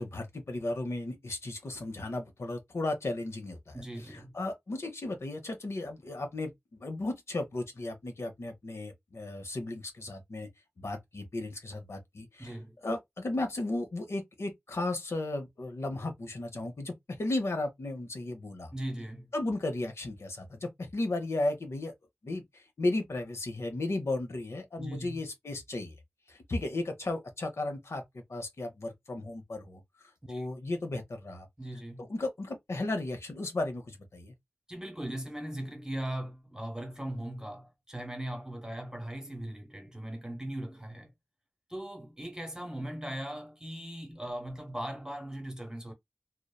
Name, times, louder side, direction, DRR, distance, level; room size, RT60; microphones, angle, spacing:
voice 1, 0.0-3.8 4.1-10.5 10.8-12.5 12.8-16.9 17.2-18.7 19.3-21.9 22.2-25.9 26.3-28.0 28.3-29.8 30.3-31.5 32.1-34.3, left 2 dB, 75° left, 0.7 m, -35 dB
voice 2, 3.7-4.4 12.4-12.8 18.7-19.3 24.8-25.2 30.3-30.5 31.6-32.1 34.7-41.1 41.7-45.9, right 1 dB, 15° right, 1.1 m, -39 dB
2.9 x 2.1 x 2.2 m
cardioid pair, 40°, 5 cm